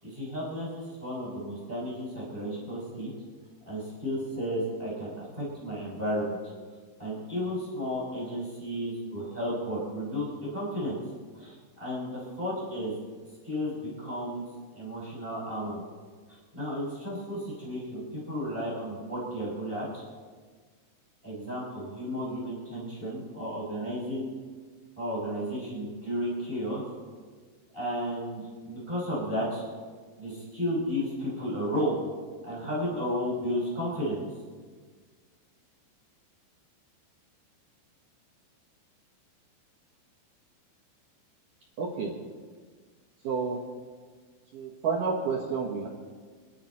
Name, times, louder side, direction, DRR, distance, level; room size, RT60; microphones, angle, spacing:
voice 1, 0.0-3.1 3.7-6.4 7.0-11.0 11.3-13.0 13.4-14.4 14.8-15.8 16.3-20.0 21.2-24.3 25.0-26.8 27.7-29.6 30.2-31.9 32.4-34.2, equal, 10° right, -6 dB, 5.8 m, -33 dB
voice 2, 41.8-42.2 43.2-43.6 44.5-45.9, right 5 dB, 60° right, -2 dB, 2.4 m, -30 dB
29.0 x 11.0 x 4.4 m, 1.6 s
omnidirectional pair, 5.4 m